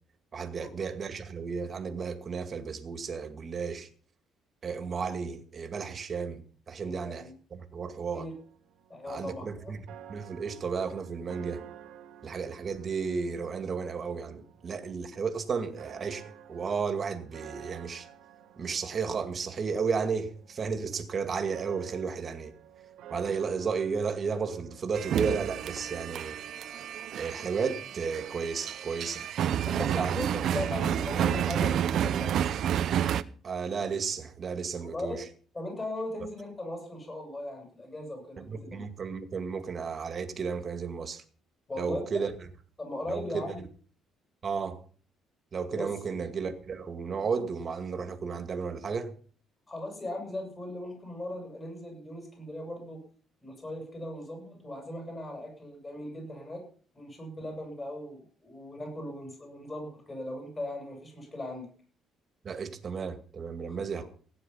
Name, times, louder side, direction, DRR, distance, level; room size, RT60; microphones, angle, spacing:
voice 1, 0.3-3.9 4.6-8.3 9.1-9.8 10.1-11.6 12.2-16.2 16.5-18.1 18.6-22.5 23.1-26.4 27.2-29.3 29.7-30.2 33.4-35.2 38.4-41.2 41.8-42.3 43.1-43.5 44.4-44.8 45.5-49.1 62.4-64.0, right 5 dB, 35° right, 2.2 m, -33 dB
voice 2, 6.8-7.3 8.1-8.3 8.9-9.7 29.7-32.4 34.8-35.2 35.5-38.8 41.7-42.0 42.8-43.6 45.8-46.0 49.7-53.0 53.4-56.6 56.9-61.7 63.7-63.8, left 1 dB, 20° left, 7.9 m, -38 dB
sound 1, 8.2-25.8, right 10 dB, 75° right, 2.1 m, -52 dB
sound 2, 24.9-33.2, right 10 dB, 60° right, 0.7 m, -30 dB
16.0 x 9.8 x 5.7 m
cardioid pair, 125°, 0 cm